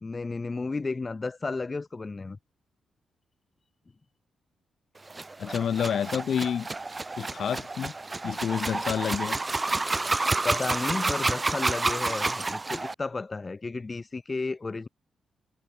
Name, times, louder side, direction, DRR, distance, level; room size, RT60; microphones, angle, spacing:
voice 1, 0.0-2.4 10.4-14.9, left 3 dB, 20° left, 0.9 m, -33 dB
sound 1, 5.1-12.9, right 3 dB, 15° right, 0.8 m, -29 dB
voice 2, 5.4-6.7 7.2-7.9 8.2-9.4, left 8 dB, 55° left, 1.0 m, -29 dB
wide cardioid pair, 165°, 0 cm